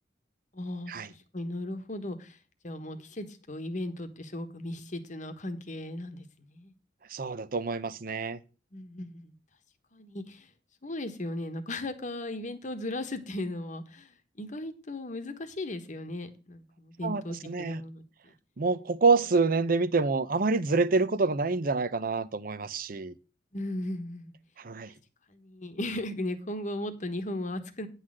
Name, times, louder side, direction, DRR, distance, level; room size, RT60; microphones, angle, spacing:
voice 1, 0.5-2.4 2.6-6.7 8.7-9.3 9.9-10.5 10.8-18.3 23.5-24.3 25.3-27.9, left 1 dB, 45° left, 1.2 m, -37 dB
voice 2, 7.1-8.4 17.0-17.8 18.6-23.1 24.6-24.9, right 4 dB, 55° right, 0.7 m, -27 dB
9.8 x 4.1 x 7.5 m
head